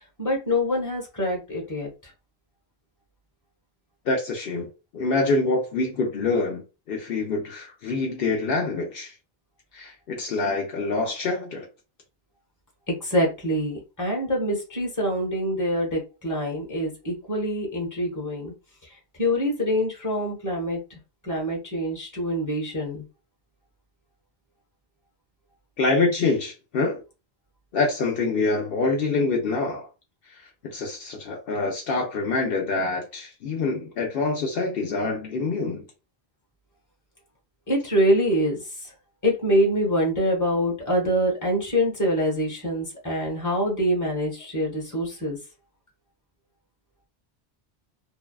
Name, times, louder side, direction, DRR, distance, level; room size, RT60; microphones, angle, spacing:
voice 1, 0.2-2.1 12.9-18.5 19.2-20.8 21.2-23.0 37.7-38.9 39.2-45.4, equal, 20° left, 0.9 m, -25 dB
voice 2, 4.1-4.7 4.9-6.6 6.9-9.1 9.7-11.7 25.8-27.0 27.7-29.9 30.6-35.8, left 3 dB, 70° left, 0.8 m, -25 dB
2.6 x 2.2 x 2.2 m
omnidirectional pair, 1.0 m